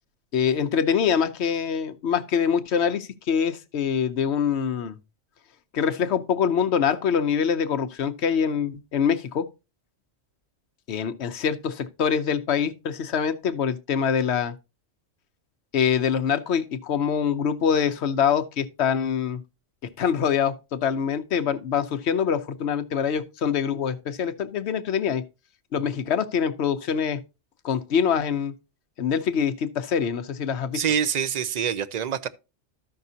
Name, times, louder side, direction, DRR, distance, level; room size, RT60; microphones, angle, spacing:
voice 1, 0.3-5.0 5.7-9.5 10.9-14.5 15.7-19.4 20.0-25.2 25.7-27.2 27.6-28.5 29.0-30.8, left 7 dB, 70° left, 1.0 m, -24 dB
voice 2, 30.7-32.3, right 8 dB, 50° right, 0.5 m, -25 dB
13.5 x 5.8 x 2.7 m
omnidirectional pair, 1.2 m